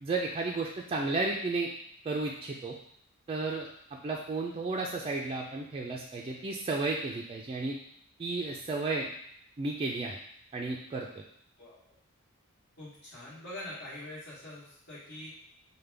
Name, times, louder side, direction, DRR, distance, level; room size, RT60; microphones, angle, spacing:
voice 1, 0.0-1.7 2.0-2.7 3.3-3.7 4.0-7.8 8.2-9.1 9.6-10.2 10.5-11.1, right 3 dB, 25° right, 0 dB, 0.3 m, -33 dB
voice 2, 12.8-15.3, left 1 dB, 65° left, -11 dB, 1.3 m, -44 dB
5.0 x 2.1 x 3.3 m, 0.66 s
head